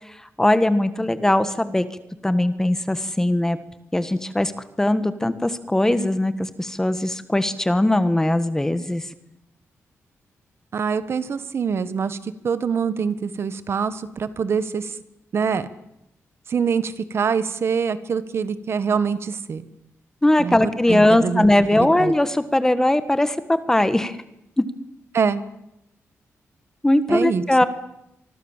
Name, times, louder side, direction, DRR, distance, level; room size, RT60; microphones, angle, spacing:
voice 1, 0.4-1.9 2.2-3.6 3.9-4.5 4.8-9.0 20.2-24.2 24.6-24.7 26.8-27.6, left 1 dB, 10° left, 12 dB, 1.4 m, -20 dB
voice 2, 10.7-14.9 15.3-15.7 16.5-19.6 20.4-20.6 20.9-21.5 21.8-22.1 25.1-25.4 27.1-27.6, right 6 dB, 55° right, 13 dB, 1.5 m, -24 dB
25.5 x 24.0 x 7.4 m, 0.83 s
wide cardioid pair, 150°, 5 cm